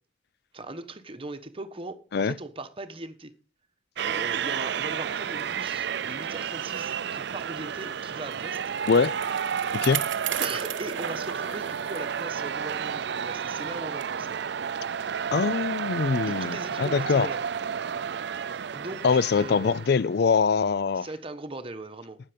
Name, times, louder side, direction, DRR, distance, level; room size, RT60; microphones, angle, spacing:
voice 1, 0.5-3.3 4.0-8.6 10.4-14.3 16.2-17.4 18.7-19.9 20.9-22.2, right 2 dB, 30° right, 1.2 m, -39 dB
sound 1, 4.0-20.2, right 7 dB, 65° right, 0.5 m, -31 dB
Bicycle, 8.3-12.2 12.7-12.8 13.6-13.7, right 10 dB, 90° right, 0.8 m, -35 dB
voice 2, 15.3-17.3 19.0-21.1, left 5 dB, 60° left, 0.4 m, -23 dB
12.0 x 9.0 x 5.2 m
head